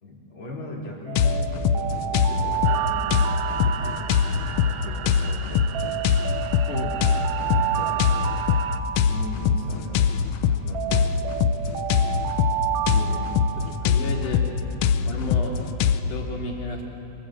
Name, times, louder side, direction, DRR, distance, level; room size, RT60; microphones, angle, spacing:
voice 1, 0.0-6.0 7.5-8.2 9.1-10.1 10.4-12.5, left 2 dB, 40° left, -3 dB, 4.4 m, -39 dB
Alarm, 1.1-5.2 5.7-10.2 10.7-14.5, right 11 dB, 65° right, 1.8 m, -30 dB
sound 1, 1.2-16.0, left 7 dB, 70° left, 1.5 m, -23 dB
sound 2, 2.6-8.8, right 10 dB, 85° right, 1.2 m, -37 dB
voice 2, 12.9-14.4 15.0-15.5 16.0-16.8, left 2 dB, 90° left, -1 dB, 4.2 m, -32 dB
24.0 x 23.0 x 7.7 m, 2.9 s
omnidirectional pair, 3.4 m